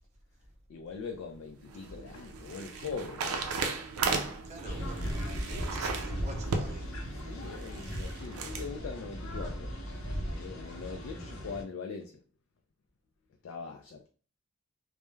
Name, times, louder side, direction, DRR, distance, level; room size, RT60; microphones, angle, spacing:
voice 1, 0.7-3.3 7.3-9.8 10.3-12.2 13.4-14.1, left 5 dB, 65° left, 0.3 m, -41 dB
sound 1, 1.3-8.7, right 4 dB, 85° right, 0.4 m, -36 dB
voice 2, 4.0-7.0, right 1 dB, 30° right, 0.5 m, -46 dB
sound 2, 4.6-11.6, equal, 80° left, 0.7 m, -37 dB
2.2 x 2.0 x 3.0 m
head